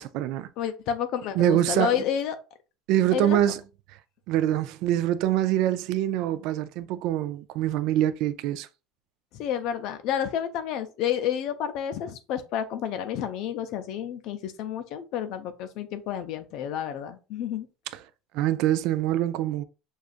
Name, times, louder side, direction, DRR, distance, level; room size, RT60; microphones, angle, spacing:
voice 1, 0.0-0.5 1.3-2.0 2.9-3.6 4.3-8.7 17.9-18.0 18.3-19.6, right 12 dB, 60° right, 0.3 m, -25 dB
voice 2, 0.6-2.4 3.1-3.4 9.3-17.7, left 9 dB, 55° left, 0.4 m, -30 dB
6.3 x 2.4 x 2.4 m
cardioid pair, 155°, 0 cm